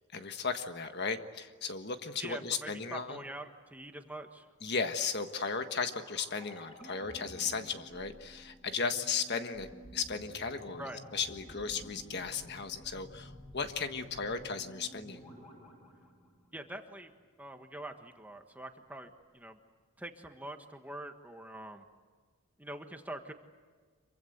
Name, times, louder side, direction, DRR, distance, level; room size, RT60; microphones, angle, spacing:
voice 1, 0.1-3.2 4.6-15.2, left 5 dB, 50° left, 7 dB, 1.5 m, -36 dB
voice 2, 2.2-4.5 10.8-11.0 16.5-17.1 17.4-19.6 20.0-21.8 22.6-23.3, right 1 dB, 5° right, 5 dB, 1.5 m, -44 dB
sound 1, 5.1-17.1 17.3-17.4, equal, 20° left, 7.8 m, -53 dB
26.5 x 24.0 x 8.1 m, 1.5 s
head